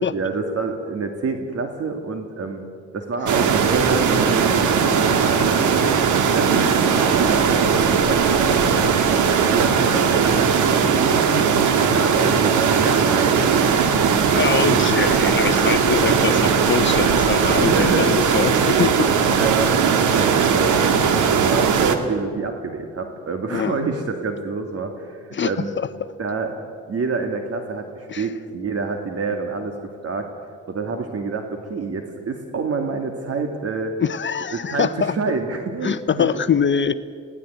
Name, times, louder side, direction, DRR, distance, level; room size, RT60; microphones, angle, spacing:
voice 1, 0.1-2.6 2.9-5.9 6.3-6.6 7.0-13.4 15.9-16.2 17.5-18.2 18.5-18.7 19.3-19.7 20.1-20.9 21.3-25.7 26.2-26.6 26.9-30.3 30.7-33.9 34.5-36.3, right 4 dB, 50° right, 5 dB, 2.1 m, -27 dB
sound 1, 3.3-22.0, right 6 dB, 80° right, 2.1 m, -18 dB
voice 2, 6.5-6.8 14.3-19.1 20.2-20.4 23.5-23.8 25.3-25.5 25.8-25.9 28.1-28.3 34.0-35.1 35.8-36.9, left 7 dB, 40° left, 12 dB, 0.8 m, -24 dB
21.0 x 17.0 x 9.3 m, 2.2 s
cardioid pair, 90°, 30 cm